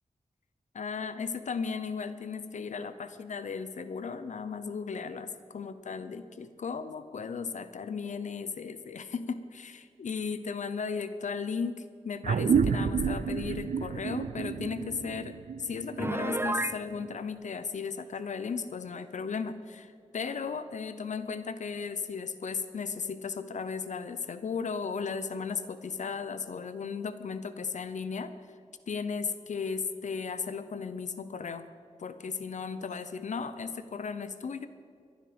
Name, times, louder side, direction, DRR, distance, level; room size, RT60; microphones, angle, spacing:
voice 1, 0.7-28.3 28.9-31.7 32.0-34.7, left 5 dB, 75° left, 12 dB, 0.8 m, -36 dB
sound 1, 12.2-17.1, right 6 dB, 85° right, 0.6 m, -30 dB
Piano, 16.0-16.8, right 2 dB, 20° right, 0.6 m, -31 dB
22.0 x 11.5 x 5.2 m, 2.3 s
wide cardioid pair, 100°, 12 cm